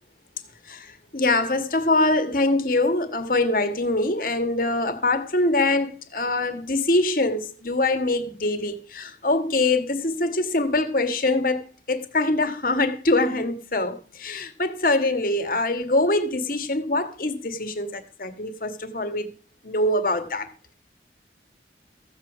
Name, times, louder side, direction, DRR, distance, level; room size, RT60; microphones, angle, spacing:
voice 1, 0.6-19.3 19.6-20.7, left 2 dB, 50° left, 1.6 m, -24 dB
15.0 x 8.0 x 6.1 m
head